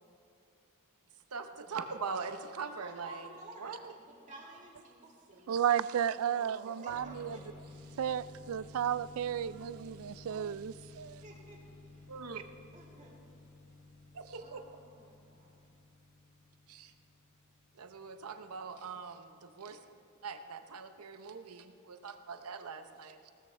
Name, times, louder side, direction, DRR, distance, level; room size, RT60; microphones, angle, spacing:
voice 1, 1.3-3.9 12.1-12.4 14.1-14.6 16.7-16.9 17.7-19.8 20.2-23.3, right 5 dB, 85° right, 8 dB, 0.8 m, -42 dB
voice 2, 2.6-5.5 6.3-7.4 11.2-11.6 12.7-13.2 14.3-15.6 19.7-19.8, right 2 dB, 35° right, -3 dB, 2.7 m, -52 dB
voice 3, 5.5-7.4 8.0-11.2, right 9 dB, 70° right, 17 dB, 0.4 m, -33 dB
sound 1, 6.9-19.3, left 2 dB, 40° left, 3.5 m, -55 dB
18.0 x 13.5 x 3.3 m, 2.4 s
head